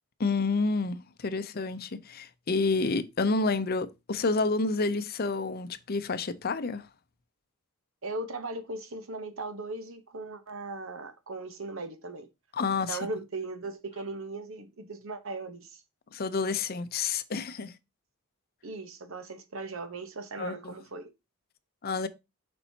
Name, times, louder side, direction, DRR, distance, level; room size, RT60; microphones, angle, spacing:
voice 1, 0.2-6.9 12.5-13.0 16.1-17.7 20.4-20.8 21.8-22.1, left 3 dB, 45° left, 0.6 m, -29 dB
voice 2, 8.0-12.3 12.9-15.8 18.6-21.1, right 2 dB, 70° right, 1.0 m, -38 dB
7.1 x 5.3 x 2.8 m
head